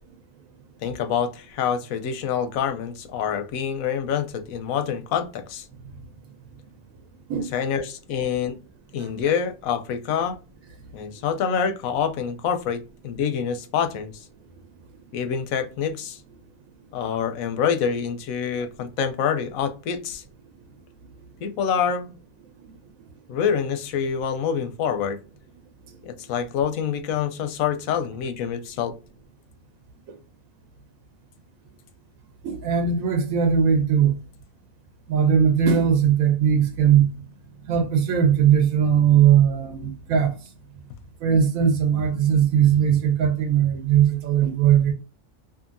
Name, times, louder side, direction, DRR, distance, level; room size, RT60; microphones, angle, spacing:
voice 1, 0.8-5.7 7.4-8.6 8.9-10.3 10.9-14.2 15.1-16.2 16.9-20.2 21.4-22.1 23.3-25.2 26.0-28.9, left 7 dB, 90° left, 1.0 m, -26 dB
voice 2, 32.4-34.2 35.1-37.1 37.7-40.3 41.2-44.9, right 8 dB, 85° right, 1.0 m, -19 dB
2.7 x 2.5 x 2.5 m
omnidirectional pair, 1.4 m